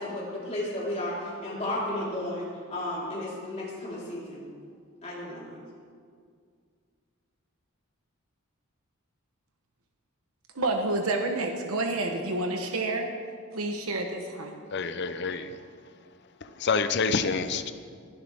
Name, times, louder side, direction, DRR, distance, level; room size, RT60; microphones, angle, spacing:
voice 1, 0.0-4.4 5.0-5.6, left 1 dB, 30° left, -6 dB, 4.0 m, -33 dB
voice 2, 10.5-13.1 13.5-14.6, right 2 dB, 75° right, 3 dB, 1.1 m, -29 dB
voice 3, 14.7-15.6 16.6-17.7, left 5 dB, 50° left, 10 dB, 0.6 m, -27 dB
20.5 x 11.5 x 3.6 m, 2.1 s
head